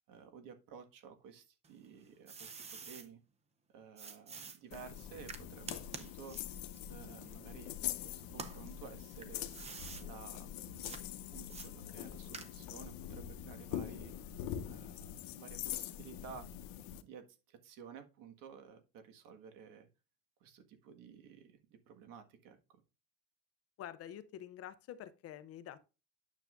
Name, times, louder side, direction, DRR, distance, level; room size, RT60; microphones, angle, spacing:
voice 1, 0.1-3.2 3.7-7.7 8.0-9.5 10.0-11.0 11.3-14.1 14.7-16.5 17.0-19.9 20.4-22.8, right 6 dB, 65° right, 1.7 m, -54 dB
sound 1, 1.6-3.1 4.0-7.9 8.3-10.1 10.8-11.0 11.5-12.8, right 5 dB, 20° right, 0.6 m, -49 dB
sound 2, 4.7-17.0, left 11 dB, 70° left, 1.0 m, -44 dB
voice 2, 23.8-25.8, left 11 dB, 40° left, 0.6 m, -48 dB
9.2 x 7.1 x 2.5 m
cardioid pair, 180°, 36 cm